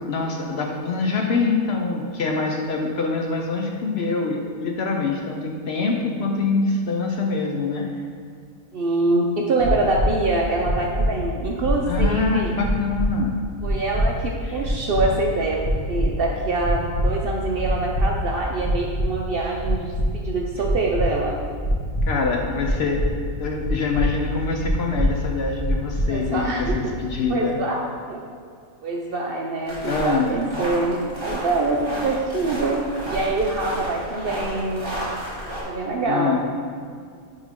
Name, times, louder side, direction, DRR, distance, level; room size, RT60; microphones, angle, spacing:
voice 1, 0.1-7.9 11.8-13.4 14.4-14.7 22.1-23.0 23.4-27.6 29.8-30.3 36.1-36.4, left 4 dB, 60° left, 1 dB, 0.8 m, -25 dB
voice 2, 8.7-12.5 13.6-15.6 15.9-21.4 26.1-26.9 27.3-27.8 28.1-28.2 28.8-32.8 33.1-34.9 35.7-36.4, right 2 dB, 60° right, -1 dB, 0.6 m, -25 dB
sound 1, 9.6-10.1 10.6-11.1 11.6-12.0 12.6-13.1 13.6-14.0 14.6-15.0 15.6-16.0 16.6-17.1 17.6-18.0 18.6-19.1 19.6-20.1 20.6-21.0 21.6-22.0 22.6-23.1 23.6-24.0 24.6-25.0 25.6-26.0 26.6-26.9, equal, 25° left, 1.2 m, -24 dB
sound 2, 29.6-35.6, right 1 dB, 40° right, 1.9 m, -32 dB
9.6 x 3.7 x 3.6 m, 2.1 s
omnidirectional pair, 1.4 m